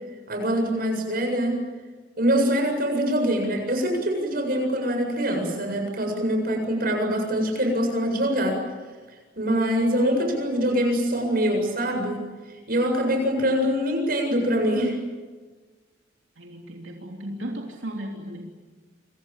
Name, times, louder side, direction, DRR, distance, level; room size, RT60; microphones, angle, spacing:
voice 1, 0.3-1.6 2.2-8.6 9.4-12.2 12.7-15.0, equal, 50° right, 3 dB, 7.7 m, -24 dB
voice 2, 16.4-18.5, right 1 dB, 85° right, 0 dB, 3.3 m, -35 dB
29.0 x 25.5 x 7.5 m, 1.4 s
head